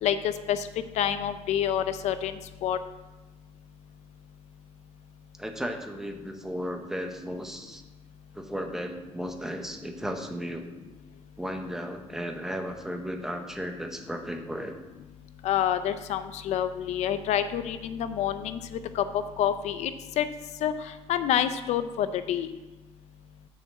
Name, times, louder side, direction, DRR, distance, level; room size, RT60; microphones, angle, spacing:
voice 1, 0.0-0.7 1.0-2.3 2.6-2.8 15.4-20.3 20.6-22.5, left 10 dB, 70° left, 11 dB, 0.5 m, -28 dB
voice 2, 5.4-7.8 8.3-10.6 11.4-14.7, equal, 5° right, 4 dB, 0.8 m, -35 dB
7.1 x 5.6 x 7.2 m, 1.1 s
cardioid pair, 170°, 12 cm